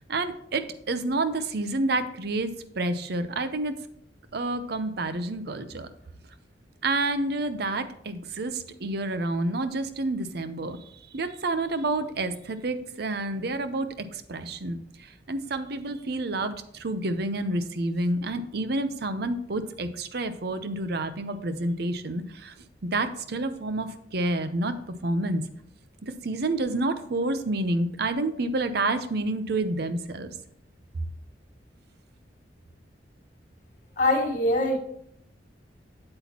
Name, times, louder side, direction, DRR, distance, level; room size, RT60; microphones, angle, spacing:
voice 1, 0.1-3.7 4.3-5.9 6.8-10.8 11.1-22.5 22.8-24.8 25.0-25.4 26.0-30.3, right 2 dB, 60° right, 10 dB, 0.7 m, -29 dB
voice 2, 34.0-34.8, left 1 dB, 45° left, 0 dB, 1.5 m, -23 dB
8.1 x 7.8 x 2.9 m, 0.70 s
head